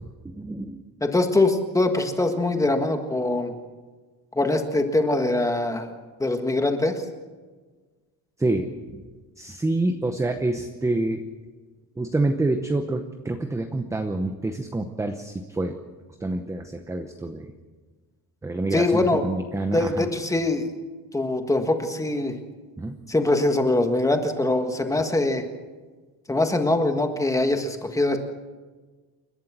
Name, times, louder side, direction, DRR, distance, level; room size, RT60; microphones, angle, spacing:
voice 1, 0.2-0.8 8.4-8.7 9.4-11.2 12.0-15.8 16.2-17.5 18.4-20.1 22.8-23.0, right 2 dB, 10° right, 6 dB, 0.8 m, -27 dB
voice 2, 1.0-3.5 4.3-5.9 6.2-7.0 18.7-19.2 19.7-20.7 21.1-22.4 23.1-25.4 26.3-28.2, left 2 dB, 10° left, 6 dB, 1.6 m, -23 dB
29.5 x 12.0 x 7.4 m, 1.4 s
cardioid pair, 180°, 39 cm